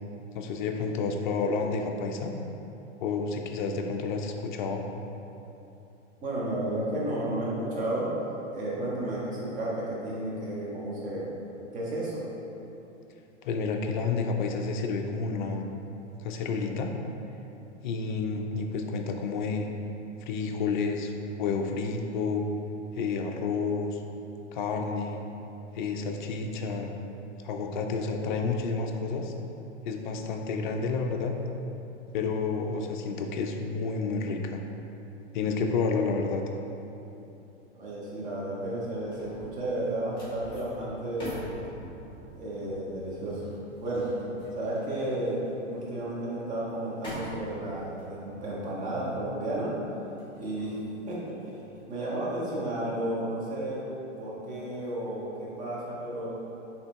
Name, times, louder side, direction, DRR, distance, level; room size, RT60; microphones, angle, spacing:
voice 1, 0.3-2.3 3.0-4.8 13.4-15.7 16.2-16.9 17.8-19.7 20.2-21.1 21.4-22.4 22.9-24.0 24.5-25.2 25.7-26.9 27.4-29.3 29.9-31.3 32.1-34.6 35.3-36.4, left 4 dB, 45° left, 3 dB, 0.4 m, -30 dB
voice 2, 6.2-8.1 8.5-11.3 11.7-12.2 37.7-41.4 42.4-43.5 43.8-44.1 44.5-45.4 45.7-49.7 50.4-50.8 51.1-51.6 51.9-53.9 54.2-56.3, right 1 dB, 20° right, -7 dB, 1.0 m, -32 dB
sound 1, 38.6-51.9 52.3-52.6, equal, 15° left, 1.2 m, -46 dB
6.5 x 2.9 x 2.2 m, 2.9 s
figure-of-eight pair, 105°, 36 cm